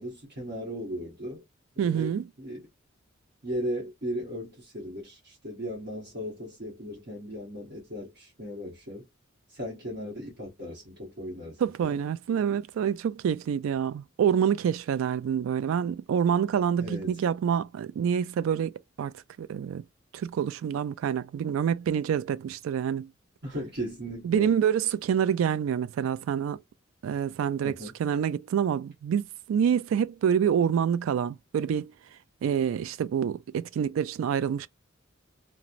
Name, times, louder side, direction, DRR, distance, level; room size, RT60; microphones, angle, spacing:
voice 1, 0.0-1.4 1.8-2.1 2.4-2.7 3.4-9.1 9.5-12.0 16.8-17.2 23.4-24.5 27.6-27.9, equal, 55° right, 1.1 m, -37 dB
voice 2, 1.8-2.3 11.6-18.7 19.0-19.8 20.1-23.1 24.2-26.6 27.0-31.9 32.4-34.7, right 8 dB, 85° right, 0.3 m, -27 dB
2.9 x 2.0 x 2.5 m
head